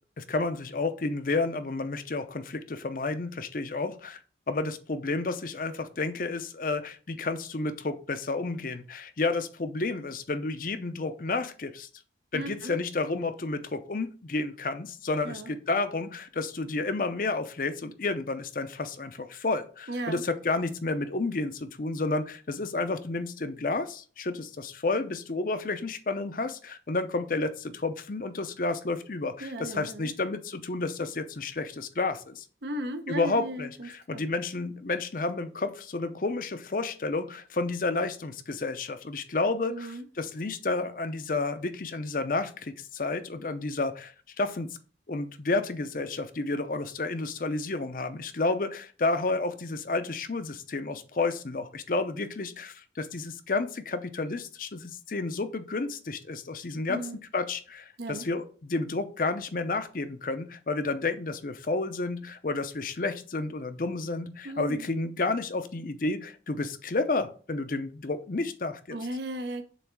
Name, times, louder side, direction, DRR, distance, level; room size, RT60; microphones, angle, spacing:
voice 1, 0.2-4.2 4.5-11.9 12.3-32.4 33.1-44.1 44.4-44.7 45.1-57.0 57.3-69.0, left 3 dB, 50° left, 0.6 m, -31 dB
voice 2, 12.3-12.8 15.2-15.5 19.9-20.2 29.4-30.1 32.6-34.2 39.7-40.0 56.9-57.2 58.0-58.3 64.4-64.9 68.9-69.6, right 1 dB, 70° right, 0.8 m, -36 dB
7.1 x 3.2 x 4.6 m
head